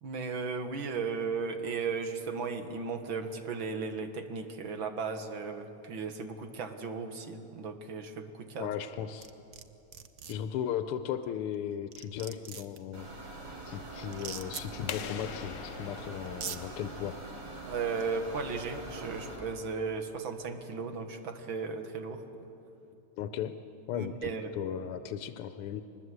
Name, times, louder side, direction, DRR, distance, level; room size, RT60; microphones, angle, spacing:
voice 1, 0.0-8.7 17.7-22.2 23.9-24.5, right 5 dB, 65° right, 7 dB, 2.1 m, -36 dB
voice 2, 8.6-9.3 10.3-13.1 13.6-17.2 23.2-23.5 23.9-25.8, left 9 dB, 90° left, 10 dB, 1.6 m, -36 dB
sound 1, 9.2-9.6 9.9-10.3 11.5-11.6 11.9-12.8 14.1-14.6 15.7-15.8 16.3-16.6, right 7 dB, 50° right, 1.1 m, -40 dB
sound 2, 12.9-19.4, right 2 dB, 85° right, 5.3 m, -44 dB
sound 3, 14.9-17.5, left 9 dB, 65° left, 1.3 m, -43 dB
24.0 x 20.5 x 8.0 m, 2.8 s
omnidirectional pair, 2.4 m